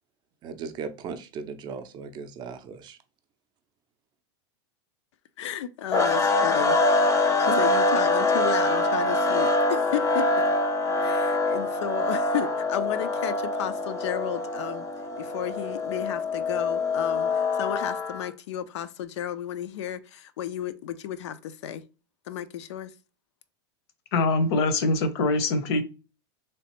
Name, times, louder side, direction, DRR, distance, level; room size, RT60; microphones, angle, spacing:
voice 1, 0.4-3.0, right 5 dB, 30° right, 0.4 m, -37 dB
voice 2, 5.4-6.8 7.4-10.4 11.0-14.9 15.2-21.8 22.3-22.9, left 10 dB, 85° left, 0.4 m, -33 dB
sound 1, 5.9-18.3, left 2 dB, 20° left, 0.5 m, -24 dB
voice 3, 24.1-25.8, left 2 dB, 65° left, 0.7 m, -23 dB
3.3 x 2.4 x 2.9 m
supercardioid pair, 135°, 15 cm